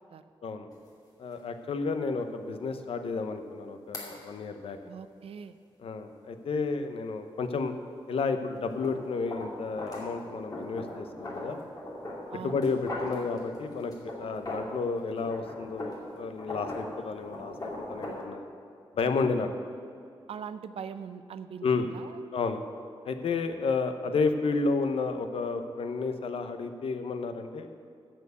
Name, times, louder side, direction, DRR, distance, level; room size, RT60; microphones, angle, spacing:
sound 1, 0.7-0.8 1.3-1.4 3.9-4.1 8.6-14.8 15.1-18.3, left 1 dB, 40° left, 2.4 m, -40 dB
voice 1, 1.2-4.8 5.8-7.7 8.1-11.6 12.4-13.9 14.2-18.4 19.0-19.5 21.6-21.9 22.3-22.6 23.0-27.7, left 4 dB, 75° left, 8 dB, 0.8 m, -31 dB
voice 2, 4.9-5.6 12.3-12.6 20.3-21.7 21.9-22.2, right 7 dB, 80° right, 12 dB, 0.5 m, -41 dB
13.5 x 4.5 x 8.3 m, 2.4 s
wide cardioid pair, 125°, 10 cm